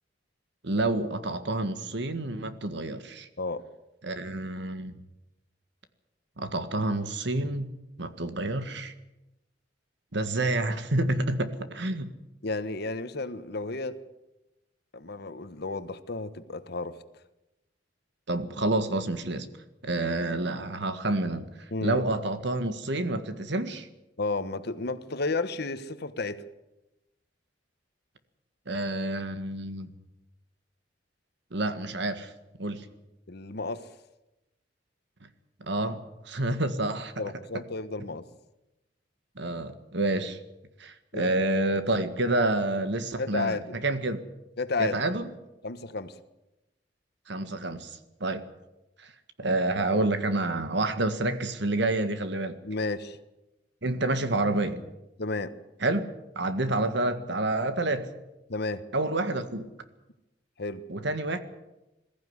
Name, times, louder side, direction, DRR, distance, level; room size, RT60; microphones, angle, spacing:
voice 1, 0.6-3.3 4.0-4.9 6.4-7.7 8.0-8.9 10.1-12.1 18.3-19.5 19.8-23.9 28.7-29.9 31.5-32.3 32.6-32.9 35.6-37.1 39.4-40.4 40.8-44.2 44.8-45.3 47.3-48.4 49.0-49.1 49.4-52.6 53.8-54.8 55.8-56.1 56.4-58.1 58.9-59.7 60.9-61.4, right 2 dB, 65° right, 10 dB, 1.8 m, -28 dB
voice 2, 12.4-14.0 14.9-17.0 21.7-22.0 24.2-26.4 33.3-33.9 37.2-38.2 41.1-41.5 43.2-43.8 44.6-45.0 45.6-46.1 52.6-53.2 55.2-55.5 58.5-58.8 60.6-60.8, left 3 dB, 60° left, 12 dB, 1.3 m, -32 dB
21.0 x 14.5 x 9.7 m, 0.97 s
head